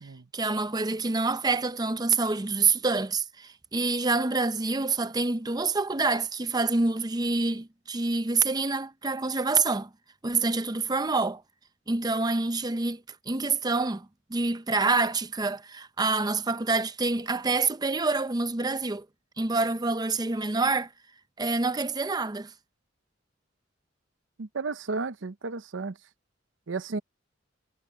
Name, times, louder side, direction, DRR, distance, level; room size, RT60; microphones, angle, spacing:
voice 1, 0.3-9.9 10.2-11.4 11.9-19.1 19.4-20.9 21.4-22.5, right 3 dB, 20° right, 0.6 m, -27 dB
voice 2, 24.4-26.0 26.7-27.0, right 3 dB, 70° right, 0.7 m, -33 dB
head